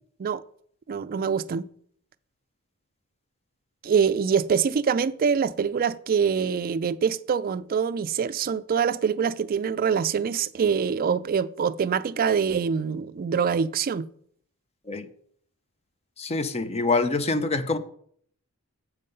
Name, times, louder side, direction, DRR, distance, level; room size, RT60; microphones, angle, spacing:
voice 1, 0.9-1.6 3.8-14.1, right 6 dB, 40° right, 0.3 m, -24 dB
voice 2, 16.2-17.8, left 3 dB, 30° left, 0.6 m, -25 dB
7.5 x 5.5 x 5.3 m
head